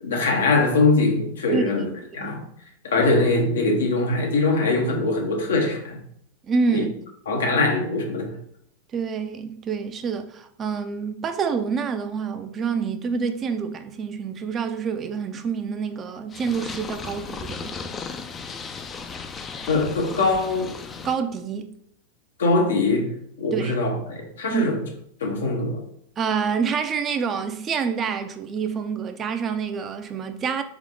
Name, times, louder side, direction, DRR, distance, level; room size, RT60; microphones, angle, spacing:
voice 1, 0.0-2.4 2.8-6.0 6.7-6.9 7.3-8.4 19.7-20.7 22.4-23.1 23.4-24.9 25.2-25.8, left 3 dB, 85° left, 1.1 m, -22 dB
voice 2, 6.5-6.9 8.9-17.8 21.0-21.7 23.5-23.7 24.5-24.6 26.2-30.6, right 6 dB, 30° right, 0.5 m, -27 dB
Purr, 16.3-21.2, left 5 dB, 25° left, 0.4 m, -35 dB
3.6 x 3.6 x 3.7 m
hypercardioid pair, 105°, 0 cm